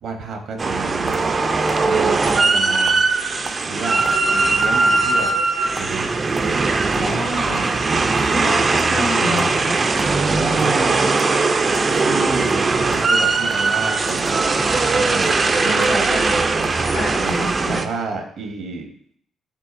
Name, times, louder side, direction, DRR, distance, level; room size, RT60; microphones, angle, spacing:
voice 1, 0.0-1.4 1.8-3.1 3.7-5.3 5.8-6.2 8.5-8.6 10.4-11.2 12.0-14.6 14.9-16.2 16.7-17.0 17.7-18.9, right 4 dB, 70° right, 4 dB, 0.8 m, -31 dB
sound 1, 0.6-17.9, right 3 dB, 35° right, 0.3 m, -19 dB
voice 2, 6.9-7.7 8.3-9.8 15.6-16.4 16.9-17.8, left 1 dB, 70° left, -2 dB, 1.5 m, -28 dB
6.8 x 2.7 x 2.5 m, 0.66 s
cardioid pair, 90°, 0 cm